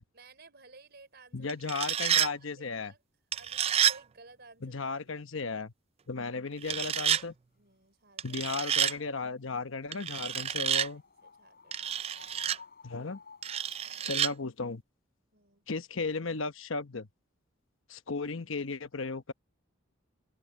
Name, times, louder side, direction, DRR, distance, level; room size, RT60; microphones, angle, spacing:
voice 1, 0.1-3.0 3.4-5.3 7.6-8.4 10.6-10.9 11.2-12.1 13.8-14.1 15.3-15.7, right 3 dB, 55° right, 5.2 m, -57 dB
voice 2, 1.3-2.9 4.6-5.7 6.1-7.3 8.2-11.0 12.8-13.2 14.0-14.8 15.7-17.1 17.9-19.3, left 4 dB, 70° left, 1.0 m, -35 dB
sound 1, 1.5-2.3 3.3-4.0 6.6-7.2 8.2-8.9 9.9-10.9 11.7-12.6 13.4-14.3, right 9 dB, 30° right, 0.3 m, -29 dB
sound 2, 8.3-14.0, left 5 dB, 45° left, 5.8 m, -56 dB
open air
head